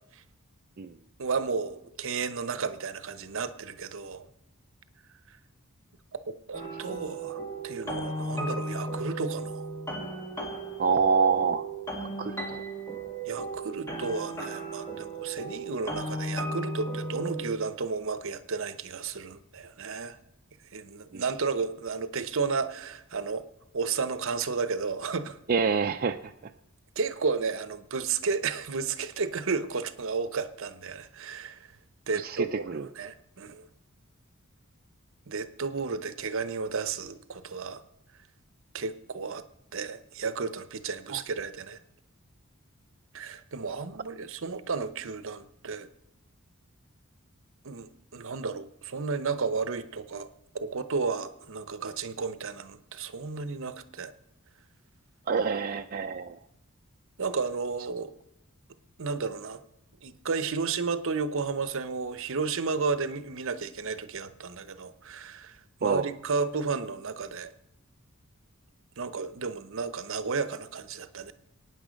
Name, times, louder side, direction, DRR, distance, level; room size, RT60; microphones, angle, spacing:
voice 1, 1.2-4.3 6.1-9.7 13.3-20.2 20.7-23.4 23.7-25.4 27.0-31.7 32.1-33.7 35.3-37.8 38.7-39.4 39.7-41.8 43.1-45.9 47.6-50.3 50.5-54.1 57.2-58.1 59.0-59.6 60.0-67.5 69.0-71.3, right 4 dB, 65° right, 12 dB, 0.8 m, -33 dB
sound 1, 6.5-17.5, right 2 dB, 15° left, 2.2 m, -35 dB
voice 2, 10.8-11.7 12.0-12.6 21.1-21.2 25.5-26.3 32.2-32.9 41.1-41.2 55.3-56.4 65.8-66.1, right 5 dB, 45° right, 5 dB, 0.4 m, -27 dB
22.5 x 9.3 x 5.2 m, 0.88 s
head